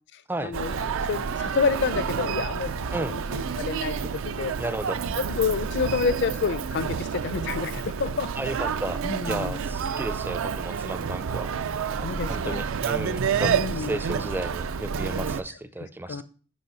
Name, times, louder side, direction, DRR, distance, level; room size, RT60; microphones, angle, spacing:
voice 1, 0.1-0.8 1.1-4.5 5.0-8.3 8.6-8.8 9.0-9.6 12.0-12.6 13.3-14.0 16.1-16.2, left 5 dB, 55° left, 15 dB, 0.5 m, -29 dB
Human voice, 0.5-15.4, right 6 dB, 65° right, 0.4 m, -29 dB
voice 2, 4.6-5.0 8.4-9.0 9.3-11.5 11.9-16.2, right 2 dB, 10° right, 12 dB, 0.4 m, -33 dB
6.4 x 5.3 x 5.6 m, 0.40 s
head